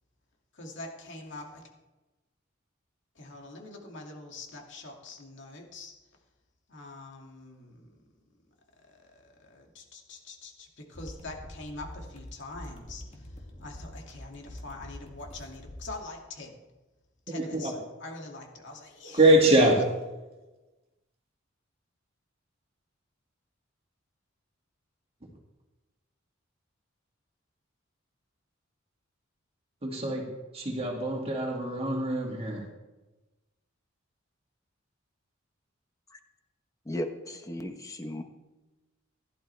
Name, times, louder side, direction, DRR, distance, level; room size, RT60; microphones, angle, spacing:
voice 1, 0.5-1.7 3.2-5.9 6.7-8.0 8.8-13.3 13.6-16.6 17.3-19.2, left 2 dB, 60° left, 2.4 m, -44 dB
sound 1, 10.9-16.0, left 1 dB, 35° left, 2.3 m, -45 dB
voice 2, 17.3-17.8 19.1-19.9 25.2-25.3 29.8-32.7, right 1 dB, 30° right, 2.2 m, -24 dB
voice 3, 36.9-38.2, left 1 dB, 15° left, 1.1 m, -35 dB
16.5 x 12.0 x 3.4 m
head